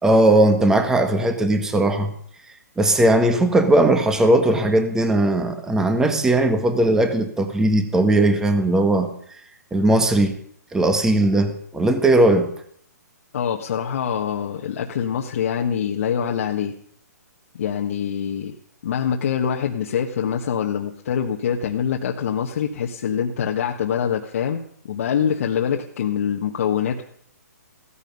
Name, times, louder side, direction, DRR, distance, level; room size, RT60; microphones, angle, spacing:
voice 1, 0.0-2.1 2.8-9.1 9.7-10.4 10.7-12.5, right 1 dB, 5° right, 8 dB, 1.4 m, -18 dB
voice 2, 13.3-16.7 17.5-18.5 18.8-27.0, left 8 dB, 50° left, 1 dB, 1.4 m, -24 dB
15.5 x 14.0 x 5.4 m, 0.62 s
hypercardioid pair, 155°, 10 cm